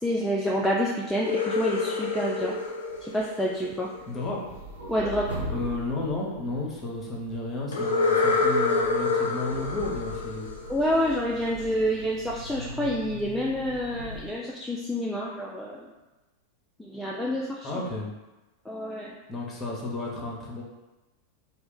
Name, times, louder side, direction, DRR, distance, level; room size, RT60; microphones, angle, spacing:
voice 1, 0.0-2.5 3.0-3.9 4.9-5.3 10.7-15.8 16.8-17.7 18.7-19.1, equal, 5° left, -4 dB, 0.3 m, -28 dB
sound 1, 1.1-4.1 7.7-11.4, left 3 dB, 65° left, 0.4 m, -27 dB
sound 2, 2.3-3.2 3.5-7.6 8.3-14.3, right 1 dB, 85° right, 0.6 m, -40 dB
voice 2, 4.1-4.4 5.5-10.5 17.6-18.1 19.3-20.6, left 2 dB, 20° left, -3 dB, 0.7 m, -32 dB
2.4 x 2.2 x 3.6 m, 1.1 s
figure-of-eight pair, 90°, 0 cm